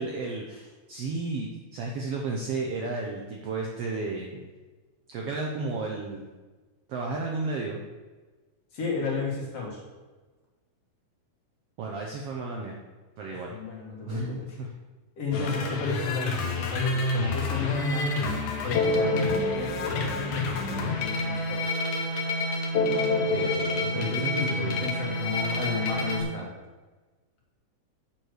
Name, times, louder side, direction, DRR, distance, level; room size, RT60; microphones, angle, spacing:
voice 1, 0.0-4.4 5.1-6.3 6.9-7.8 11.8-12.7 13.2-13.5 14.1-14.7 15.3-15.5 23.2-24.8, right 3 dB, 70° right, -1 dB, 1.4 m, -33 dB
voice 2, 8.7-9.8 13.3-14.5 15.2-18.3 18.6-21.6 23.9-26.5, left 5 dB, 55° left, -3 dB, 2.5 m, -33 dB
sound 1, 15.3-26.2, left 2 dB, 75° left, 2.4 m, -28 dB
7.8 x 4.4 x 6.4 m, 1.3 s
omnidirectional pair, 3.7 m